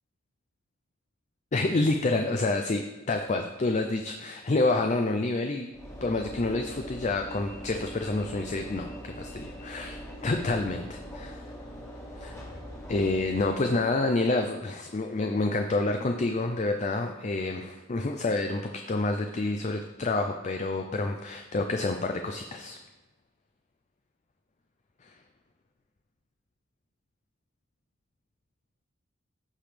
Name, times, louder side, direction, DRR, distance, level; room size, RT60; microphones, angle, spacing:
voice 1, 1.5-5.7 6.0-11.5 12.2-12.4 12.9-22.8 25.0-25.1, left 2 dB, 35° left, 5 dB, 0.5 m, -28 dB
Train / Engine / Alarm, 5.7-14.0, equal, 15° left, 1.7 m, -42 dB
14.5 x 5.1 x 3.3 m, 1.1 s
head